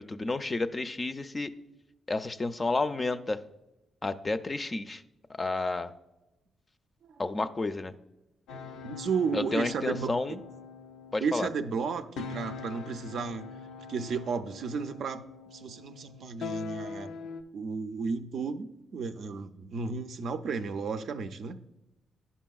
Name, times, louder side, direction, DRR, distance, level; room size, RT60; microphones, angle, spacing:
voice 1, 0.0-1.5 2.1-3.4 4.0-5.0 5.3-5.9 7.2-7.9 9.3-10.4 11.1-11.5, left 3 dB, 30° left, 10 dB, 0.4 m, -31 dB
sound 1, 8.5-17.4, left 4 dB, 90° left, 0.4 m, -43 dB
voice 2, 8.8-10.1 11.2-13.5 13.9-15.2 15.5-17.1 17.5-21.6, right 5 dB, 70° right, 9 dB, 0.4 m, -33 dB
11.0 x 5.5 x 2.3 m, 0.95 s
cardioid pair, 80°, 0 cm